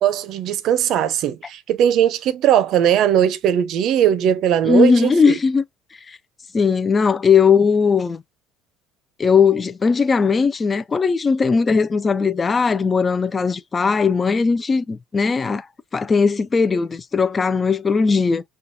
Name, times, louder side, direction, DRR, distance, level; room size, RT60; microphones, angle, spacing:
voice 1, 0.0-5.4, right 10 dB, 60° right, 0.6 m, -19 dB
voice 2, 4.6-5.6 6.1-6.2 6.5-8.2 9.2-15.7 15.9-18.4, left 5 dB, 25° left, 0.5 m, -18 dB
5.5 x 2.3 x 2.6 m
cardioid pair, 105°, 0 cm